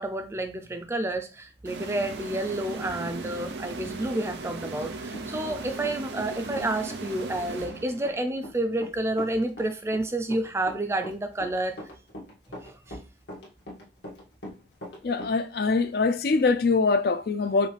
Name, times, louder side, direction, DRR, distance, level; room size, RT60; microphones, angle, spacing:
voice 1, 0.0-11.8 12.6-13.0, right 1 dB, 15° right, 0.4 m, -30 dB
sound 1, 1.6-8.3, right 3 dB, 75° right, 0.6 m, -37 dB
Run, 4.6-6.3 6.6-15.4, equal, 80° left, 1.5 m, -42 dB
voice 2, 15.0-17.7, left 4 dB, 60° left, 0.4 m, -23 dB
5.3 x 2.4 x 3.3 m
head